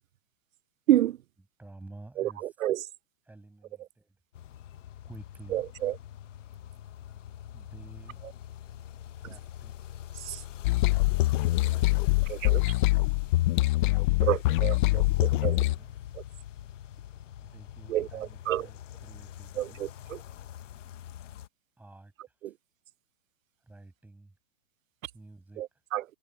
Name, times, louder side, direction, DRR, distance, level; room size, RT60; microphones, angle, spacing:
voice 1, 1.6-2.5 3.3-4.2 5.0-5.7 7.5-8.2 9.2-9.8 11.6-12.3 13.8-16.1 17.4-19.9 21.8-22.1 23.6-24.3 25.1-25.6, right 2 dB, 5° right, 6.9 m, -51 dB
sound 1, 4.3-21.5, left 11 dB, 70° left, 1.5 m, -44 dB
voice 2, 5.5-5.9 10.3-10.4 12.3-12.6 14.2-15.6 17.9-18.7 19.6-20.2 22.4-22.5 25.6-26.0, right 13 dB, 85° right, 0.7 m, -29 dB
sound 2, 10.6-15.8, left 18 dB, 40° left, 1.1 m, -24 dB
hypercardioid pair, 150°, 39 cm